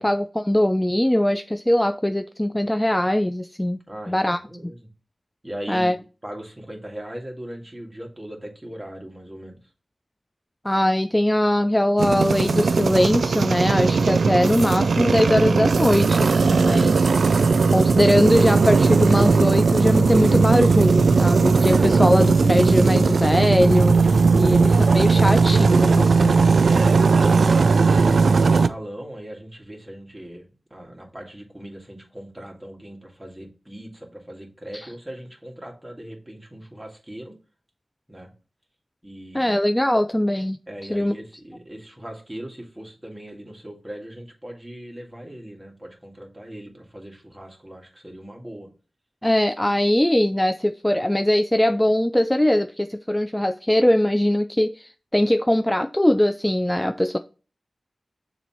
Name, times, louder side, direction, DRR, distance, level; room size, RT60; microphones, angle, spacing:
voice 1, 0.0-3.8 4.1-4.4 5.7-6.0 10.6-17.1 17.7-26.4 34.7-34.9 39.3-40.6 40.9-41.2 49.2-57.2, left 1 dB, 10° left, 0.3 m, -21 dB
voice 2, 3.9-4.9 5.4-5.9 6.2-9.6 16.8-17.0 26.7-37.3 38.1-38.3 39.0-39.7 40.7-48.7, right 1 dB, 15° right, 1.9 m, -38 dB
sound 1, 12.0-28.7, right 4 dB, 80° right, 0.3 m, -18 dB
6.7 x 3.0 x 5.6 m
wide cardioid pair, 70°, 0 cm